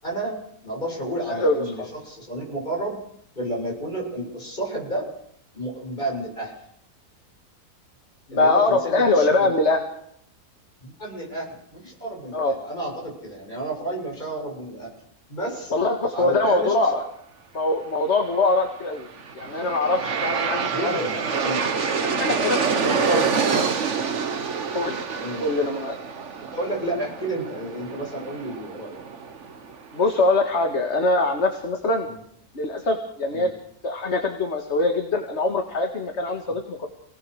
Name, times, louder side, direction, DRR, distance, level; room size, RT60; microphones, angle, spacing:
voice 1, 0.0-3.0 3.4-5.1 5.5-6.5 8.3-9.5 10.8-14.9 15.3-15.7 16.1-16.9 20.7-21.7 23.1-23.7 25.2-25.4 26.5-29.0 32.0-32.2 33.3-33.5, right 1 dB, 30° left, 0 dB, 7.5 m, -31 dB
voice 2, 1.3-1.9 8.3-9.8 12.3-12.5 15.7-17.0 17.5-19.1 19.3-20.9 21.4-21.5 22.0-23.3 24.7-25.0 25.4-25.9 29.9-32.1 32.5-33.5 33.8-36.9, left 2 dB, 45° left, 4 dB, 2.2 m, -23 dB
Aircraft, 19.0-30.0, right 5 dB, 50° right, 1.5 m, -27 dB
28.5 x 18.5 x 6.5 m, 0.70 s
omnidirectional pair, 1.6 m